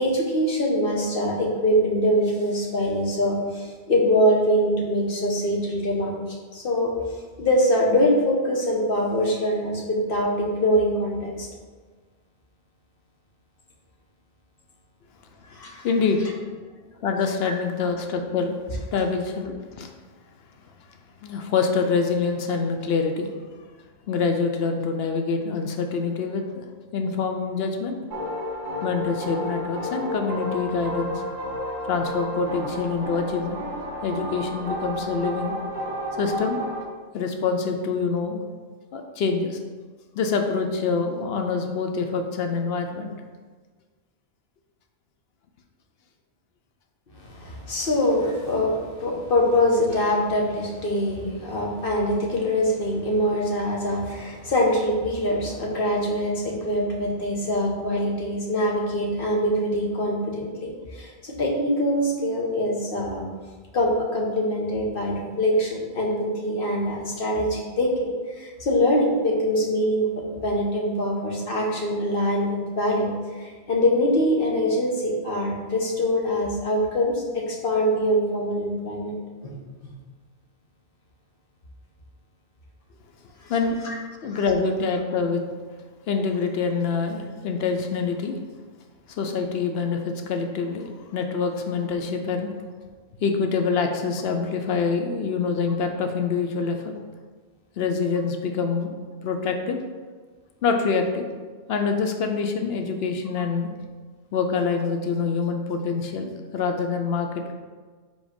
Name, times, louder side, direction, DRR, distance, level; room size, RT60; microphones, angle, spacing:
voice 1, 0.0-6.1 6.5-6.9 7.4-11.5 15.5-15.9 17.4-17.5 47.1-63.2 63.7-70.1 70.3-72.5 72.8-79.2 79.4-79.6 83.8-83.9 84.3-84.4, equal, 60° left, -1 dB, 1.3 m, -24 dB
voice 2, 15.8-16.4 17.0-18.6 18.9-19.9 21.2-23.3 24.1-26.6 26.9-28.0 28.8-31.2 31.9-33.6 34.0-35.5 36.2-36.7 37.1-38.4 38.9-39.6 40.2-43.1 83.4-83.8 84.2-85.4 86.1-88.4 89.1-92.5 93.2-96.9 97.8-99.8 100.6-101.3 101.7-103.7 104.3-107.5, left 5 dB, 80° left, 5 dB, 0.8 m, -25 dB
sound 1, 28.1-36.8, equal, 50° right, 1.1 m, -31 dB
4.9 x 3.9 x 5.1 m, 1.4 s
omnidirectional pair, 1.0 m